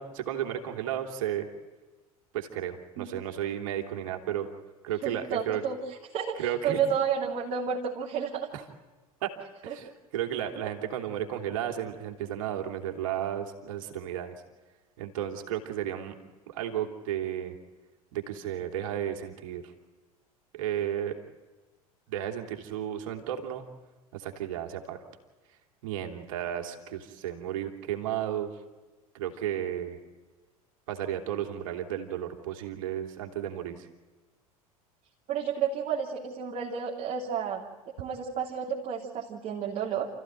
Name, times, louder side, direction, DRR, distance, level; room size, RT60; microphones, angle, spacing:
voice 1, 0.0-1.5 2.3-4.5 4.8-5.6 6.4-6.8 8.5-8.6 9.2-9.3 9.6-14.4 15.0-16.1 16.5-17.6 18.1-19.6 20.5-21.2 22.1-23.6 24.1-25.0 25.8-28.5 29.1-30.0 30.9-33.9, right 10 dB, 60° right, 3 dB, 3.0 m, -33 dB
voice 2, 5.0-5.8 6.1-8.5 9.7-9.8 35.3-37.6 38.0-40.1, right 7 dB, 40° right, -3 dB, 3.2 m, -31 dB
29.5 x 15.0 x 9.1 m, 1.2 s
figure-of-eight pair, 75°, 19 cm